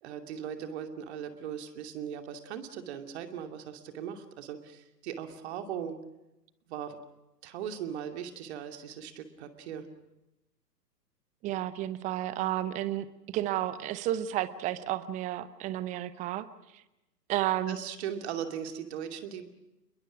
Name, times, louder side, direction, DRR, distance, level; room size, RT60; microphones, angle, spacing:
voice 1, 0.0-6.0 6.7-7.0 7.4-9.9 17.7-19.5, right 8 dB, 40° right, 7 dB, 2.7 m, -39 dB
voice 2, 11.4-16.5 17.3-17.8, right 13 dB, 15° right, 16 dB, 0.8 m, -32 dB
28.0 x 22.0 x 6.2 m, 0.94 s
figure-of-eight pair, 115°, 48 cm